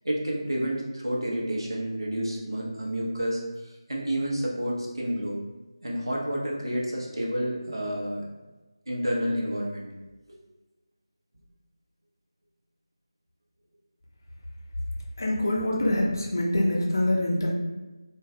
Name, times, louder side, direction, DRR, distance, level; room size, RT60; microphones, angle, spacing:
voice 1, 0.0-5.4 5.8-8.3 8.9-9.9, equal, 65° right, -3 dB, 0.8 m, -29 dB
voice 2, 15.2-17.5, left 1 dB, 45° left, -1 dB, 0.5 m, -25 dB
3.2 x 2.3 x 2.3 m, 1.1 s
figure-of-eight pair, 165°, 3 cm